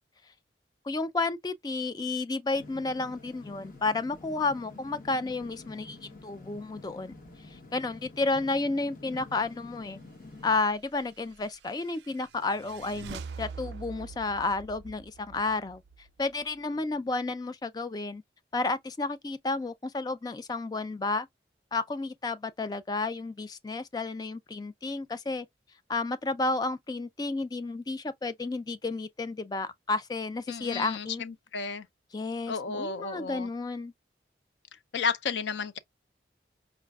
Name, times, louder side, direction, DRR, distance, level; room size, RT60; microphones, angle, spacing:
voice 1, 0.8-7.1 7.5-10.0 10.4-18.2 18.5-21.3 21.7-25.5 25.9-31.2 32.1-33.9, left 3 dB, 20° left, 0.3 m, -32 dB
sound 1, 2.5-10.6, left 2 dB, 50° left, 0.9 m, -49 dB
sound 2, 11.0-16.6, right 5 dB, 75° right, 0.4 m, -45 dB
voice 2, 30.5-31.9 32.5-33.5 34.9-35.8, left 5 dB, 85° left, 0.5 m, -32 dB
4.8 x 2.4 x 2.3 m
head